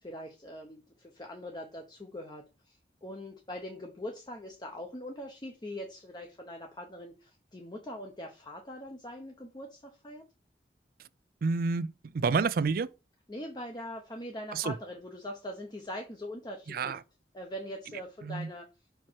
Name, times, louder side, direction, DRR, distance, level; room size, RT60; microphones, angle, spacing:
voice 1, 0.0-10.2 13.3-17.0 17.3-18.7, left 1 dB, 25° left, 0.9 m, -42 dB
voice 2, 11.4-11.9 12.1-12.9 14.5-14.7 16.7-17.0 18.2-18.5, right 4 dB, 55° right, 0.4 m, -28 dB
5.8 x 4.6 x 4.5 m
head